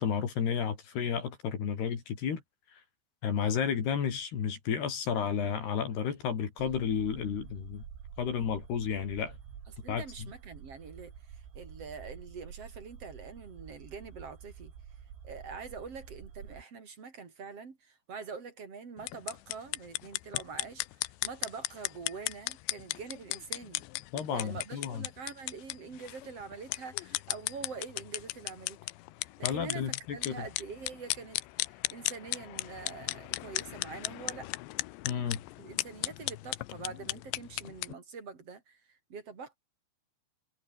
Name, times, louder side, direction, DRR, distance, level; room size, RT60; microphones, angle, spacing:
voice 1, 0.0-2.4 2.7-2.8 3.2-7.9 8.2-9.4 9.9-10.0 24.1-25.1 29.4-30.5 35.1-35.4, left 7 dB, 60° left, 5.3 m, -32 dB
sound 1, 6.6-16.6, right 8 dB, 85° right, 6.3 m, -49 dB
voice 2, 9.8-14.7 15.2-23.8 24.3-28.8 29.4-34.5 35.6-39.6, right 5 dB, 35° right, 3.9 m, -45 dB
sound 2, 19.0-37.9, left 20 dB, 80° left, 2.8 m, -37 dB
omnidirectional pair, 5.4 m